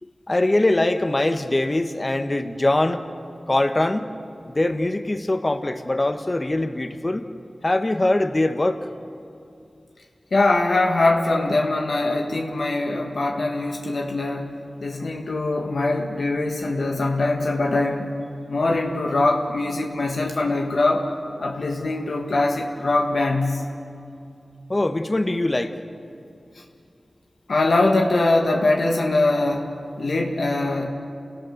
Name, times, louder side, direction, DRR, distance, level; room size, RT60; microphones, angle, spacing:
voice 1, 0.0-3.0 3.5-4.1 4.5-7.2 7.6-8.8 24.7-25.7, left 2 dB, 35° left, 8 dB, 1.4 m, -22 dB
voice 2, 10.3-14.6 14.8-18.1 18.5-21.1 21.4-23.6 27.5-30.9, left 2 dB, 85° left, 1 dB, 1.8 m, -22 dB
29.5 x 18.0 x 6.7 m, 2.5 s
wide cardioid pair, 55°, 0 cm